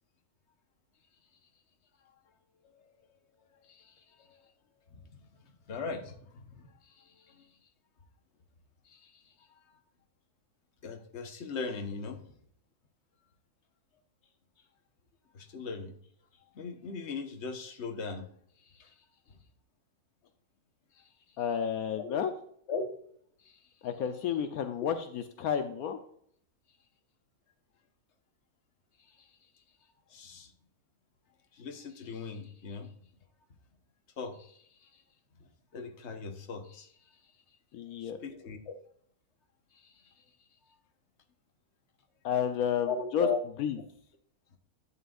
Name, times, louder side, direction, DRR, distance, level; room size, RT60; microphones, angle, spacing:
voice 1, 2.6-3.2 3.5-4.5 4.9-7.6 8.8-9.8 10.8-12.3 15.3-15.9 16.5-18.3 18.6-19.4 20.9-21.1 21.9-22.2 22.7-22.9 23.4-23.7 29.0-29.4 30.1-30.5 31.5-32.9 34.2-35.0 35.4-37.3 38.0-38.7 39.7-40.2 40.6-40.8 42.8-43.4, left 5 dB, 50° left, 5 dB, 1.3 m, -40 dB
voice 2, 21.4-22.3 23.8-26.0 37.7-38.2 42.2-43.3 43.6-43.8, left 8 dB, 75° left, 7 dB, 1.2 m, -31 dB
11.0 x 8.0 x 2.5 m, 0.64 s
omnidirectional pair, 1.6 m